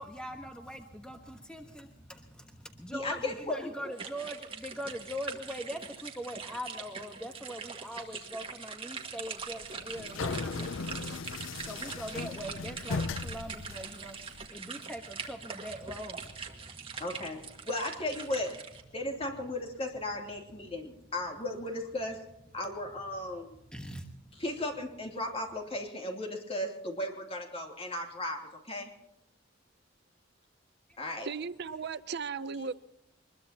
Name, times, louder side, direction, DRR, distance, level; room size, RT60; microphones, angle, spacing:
voice 1, 0.0-17.7 21.7-21.8 23.7-24.4 30.9-31.0, equal, 5° left, 1.2 m, -42 dB
voice 2, 2.9-3.9 10.9-11.0 17.0-18.6 18.9-22.2 22.5-23.6 24.4-28.9 31.0-31.3, left 1 dB, 30° left, 3.0 m, -36 dB
sound 1, 3.9-18.8, right 5 dB, 30° right, 1.9 m, -43 dB
sound 2, 9.4-14.5, left 4 dB, 90° left, 0.6 m, -37 dB
voice 3, 31.2-32.7, right 5 dB, 60° right, 0.6 m, -36 dB
23.5 x 21.5 x 2.9 m
head